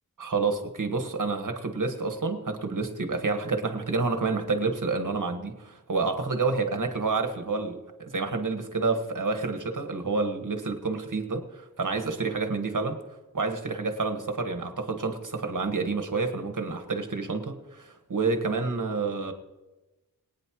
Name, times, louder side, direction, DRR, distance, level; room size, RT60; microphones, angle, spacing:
voice 1, 0.2-13.0 13.3-19.3, right 4 dB, 60° right, 5 dB, 1.7 m, -29 dB
22.0 x 9.6 x 3.1 m, 1.1 s
wide cardioid pair, 80°, 35 cm